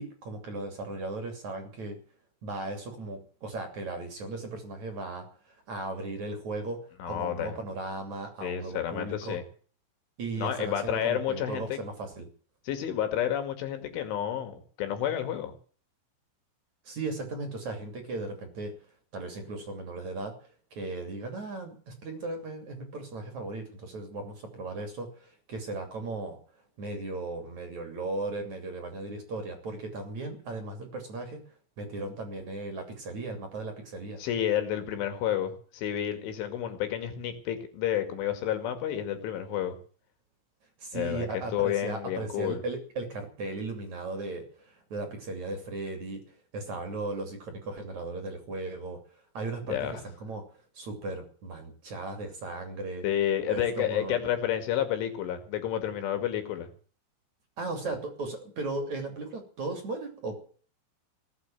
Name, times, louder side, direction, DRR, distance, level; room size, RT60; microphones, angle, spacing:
voice 1, 0.0-2.0 2.4-5.3 5.7-6.8 7.1-9.4 10.2-12.3 16.9-18.7 19.1-20.3 20.7-26.4 26.8-31.4 31.8-34.2 40.8-46.2 46.5-49.0 49.3-50.4 50.8-53.1 53.5-54.2 57.6-60.4, right 2 dB, 40° right, 5 dB, 3.5 m, -36 dB
voice 2, 7.0-7.6 8.4-9.4 10.4-11.8 12.7-15.5 34.2-39.8 40.9-42.6 49.7-50.0 53.0-56.7, left 10 dB, 70° left, 8 dB, 4.6 m, -30 dB
19.0 x 8.3 x 9.1 m, 0.42 s
omnidirectional pair, 5.8 m